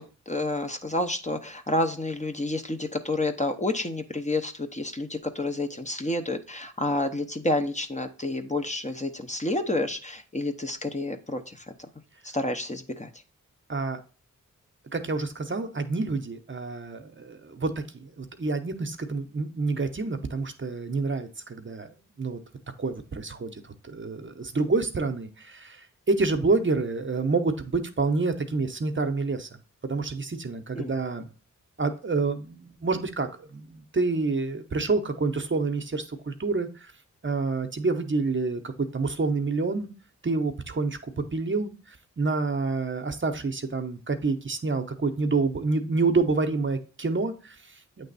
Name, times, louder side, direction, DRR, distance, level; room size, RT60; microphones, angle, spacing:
voice 1, 0.0-11.7 12.2-13.1 30.8-30.9, left 2 dB, 20° left, 6 dB, 0.8 m, -29 dB
voice 2, 13.7-14.0 14.9-22.4 22.8-29.5 29.8-31.3 31.8-36.9 37.2-39.9 40.2-48.1, right 3 dB, 35° right, 7 dB, 0.8 m, -28 dB
8.1 x 3.4 x 4.1 m, 0.36 s
cardioid pair, 40°, 33 cm